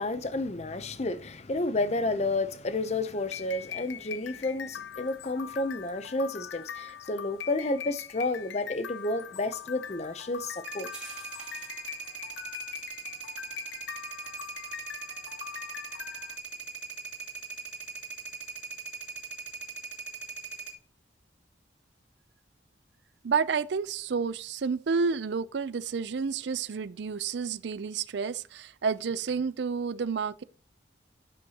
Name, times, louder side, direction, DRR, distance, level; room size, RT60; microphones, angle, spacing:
voice 1, 0.0-10.9, left 2 dB, 35° left, 0.6 m, -31 dB
sound 1, 1.1-11.9, right 2 dB, 5° right, 3.7 m, -58 dB
sound 2, 3.2-16.4, left 9 dB, 75° left, 0.4 m, -42 dB
sound 3, 10.6-20.8, right 5 dB, 85° right, 2.2 m, -41 dB
voice 2, 23.2-30.4, right 5 dB, 70° right, 0.4 m, -30 dB
11.0 x 7.8 x 2.9 m
head